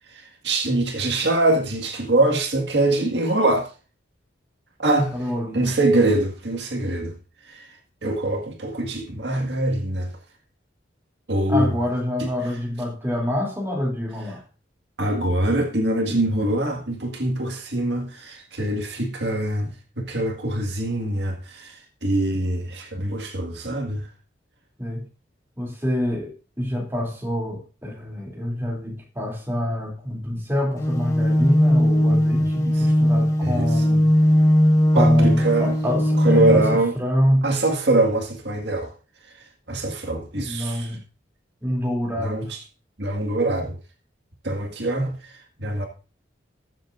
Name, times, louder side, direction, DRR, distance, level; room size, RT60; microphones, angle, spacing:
voice 1, 0.1-3.7 4.8-5.2 5.5-7.2 7.4-7.7 8.0-10.1 11.3-11.7 12.2-12.3 15.0-24.1 32.4-32.9 33.4-33.8 34.9-35.7 36.2-36.9 37.4-38.9 39.3-40.9 42.2-42.6 43.0-43.8 44.4-45.9, right 2 dB, 65° right, 1.9 m, -24 dB
voice 2, 5.1-5.7 11.5-14.4 24.8-25.0 25.6-34.1 34.9-36.7 36.9-37.4 40.3-41.0 41.6-42.5, equal, 15° right, 2.9 m, -26 dB
sound 1, 30.8-36.8, equal, 15° left, 1.5 m, -18 dB
20.5 x 7.6 x 2.6 m
head